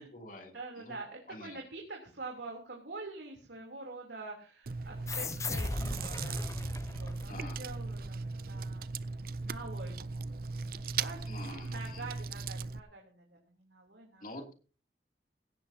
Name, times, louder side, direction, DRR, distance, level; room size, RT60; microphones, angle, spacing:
voice 1, 0.0-0.5 0.8-0.9 1.3-1.6 7.3-7.6 11.3-12.1 14.2-14.5, left 1 dB, 50° left, 3 dB, 2.9 m, -46 dB
voice 2, 0.5-9.0 9.4-11.4 11.7-14.2, right 3 dB, 90° right, 0 dB, 3.4 m, -46 dB
Chewing mastication, 4.6-12.8, right 4 dB, 55° right, 0.6 m, -38 dB
sound 1, 5.1-8.1, left 2 dB, 15° left, 0.6 m, -38 dB
17.0 x 17.0 x 2.9 m, 0.38 s
head